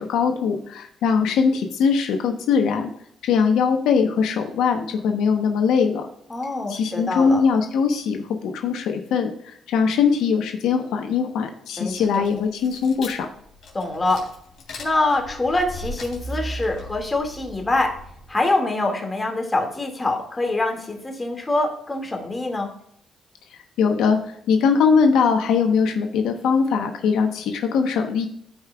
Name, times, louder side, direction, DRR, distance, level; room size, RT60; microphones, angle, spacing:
voice 1, 0.0-2.9 3.2-6.1 6.7-13.3 23.8-24.2 24.5-28.3, left 6 dB, 85° left, 4 dB, 1.0 m, -21 dB
voice 2, 6.3-7.4 11.8-12.2 13.7-14.3 14.8-18.0 18.3-22.7, left 2 dB, 20° left, 2 dB, 2.1 m, -24 dB
sound 1, 11.9-18.4, equal, 60° left, 3.3 m, -37 dB
15.0 x 5.2 x 2.3 m, 0.68 s
cardioid pair, 90°, 0 cm